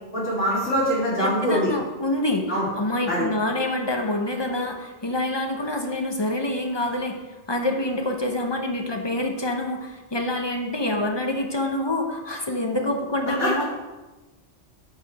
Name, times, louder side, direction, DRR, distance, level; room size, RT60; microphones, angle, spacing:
voice 1, 0.1-1.7 2.5-2.7 3.1-3.3 13.4-13.5, equal, 85° left, -7 dB, 3.3 m, -23 dB
voice 2, 1.2-2.5 2.8-7.2 7.5-13.7, left 1 dB, 25° left, 3 dB, 0.7 m, -26 dB
9.3 x 4.9 x 4.9 m, 1.1 s
omnidirectional pair, 1.2 m